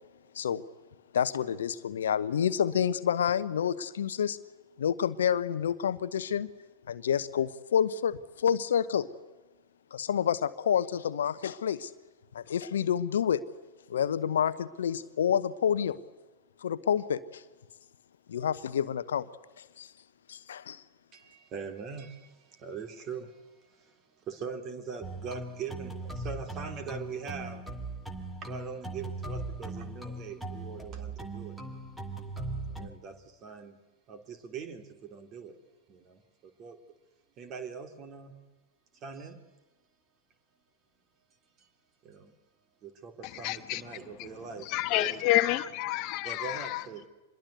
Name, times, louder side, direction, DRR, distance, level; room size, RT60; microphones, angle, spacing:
voice 1, 1.1-4.4 4.8-6.5 6.9-9.1 9.9-11.9 12.3-13.4 13.9-16.0 16.6-17.4 18.3-19.3 19.6-19.9 20.3-20.8, left 8 dB, 65° left, 14 dB, 1.0 m, -28 dB
voice 2, 21.1-27.6 28.4-31.6 32.8-33.8 34.1-35.6 35.9-36.8 37.4-38.4 38.9-39.4 41.6-41.7 42.0-42.3 42.8-45.2 46.2-47.1, right 6 dB, 35° right, 7 dB, 3.2 m, -42 dB
sound 1, 25.0-32.9, right 2 dB, 5° right, 2.5 m, -39 dB
voice 3, 43.2-44.3 44.6-46.8, left 16 dB, 40° left, 11 dB, 1.2 m, -29 dB
26.0 x 21.5 x 8.2 m, 1.2 s
figure-of-eight pair, 90°, 0 cm